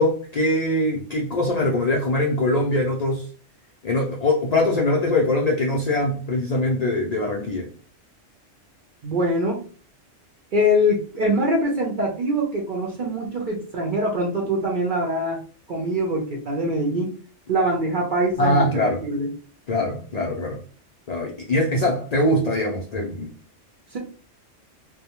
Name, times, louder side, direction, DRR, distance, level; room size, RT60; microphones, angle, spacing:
voice 1, 0.0-3.3 3.8-7.7 18.4-19.0 19.7-20.6 21.1-23.3, left 1 dB, 85° left, -1 dB, 0.3 m, -22 dB
voice 2, 9.0-9.6 10.5-15.4 15.7-17.1 17.5-18.7 19.0-19.3 23.9-24.0, equal, 60° right, 0 dB, 0.5 m, -23 dB
2.2 x 2.1 x 2.8 m, 0.40 s
omnidirectional pair, 1.3 m